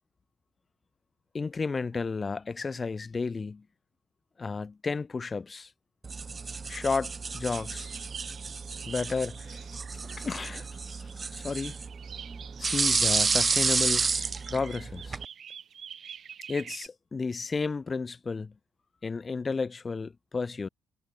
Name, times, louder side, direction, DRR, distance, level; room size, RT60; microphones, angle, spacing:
voice 1, 1.3-3.6 4.4-5.7 6.7-7.9 8.9-9.7 9.9-11.7 12.6-14.1 14.5-15.2 16.5-18.5 19.0-20.7, left 4 dB, 30° left, 1.5 m, -32 dB
sound 1, 6.0-15.3, right 4 dB, 35° right, 1.3 m, -31 dB
sound 2, 7.5-11.1 11.5-16.9, right 8 dB, 55° right, 2.1 m, -47 dB
cardioid pair, 90°, 0 cm